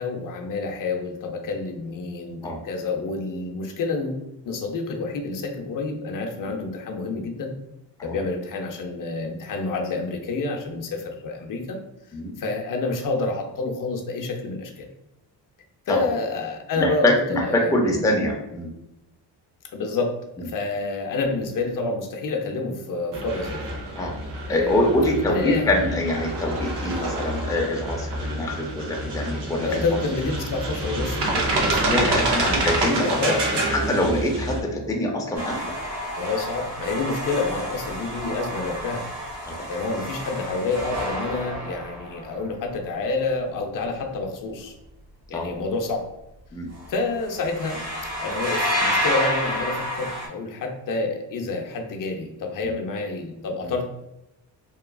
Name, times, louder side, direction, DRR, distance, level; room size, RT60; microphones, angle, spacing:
voice 1, 0.0-7.5 8.0-11.8 12.4-14.9 15.9-18.0 19.7-23.7 24.5-24.9 25.3-25.7 29.7-31.8 32.2-32.4 33.0-33.6 36.2-39.0 39.7-44.7 45.3-46.1 46.9-47.8 48.2-53.9, left 3 dB, 50° left, 3 dB, 0.6 m, -28 dB
voice 2, 16.8-18.7 24.0-24.1 24.5-29.8 31.9-33.1 33.7-35.8 39.4-39.7 45.3-45.6 46.5-46.7 52.6-52.7 53.6-53.7, left 1 dB, 10° left, 0 dB, 0.5 m, -24 dB
sound 1, 23.1-34.6, right 2 dB, 70° right, 0.8 m, -27 dB
sound 2, 35.3-42.5 46.7-47.0 47.2-50.3, equal, 35° right, 1.0 m, -29 dB
2.9 x 2.3 x 2.3 m, 0.90 s
cardioid pair, 105°, 41 cm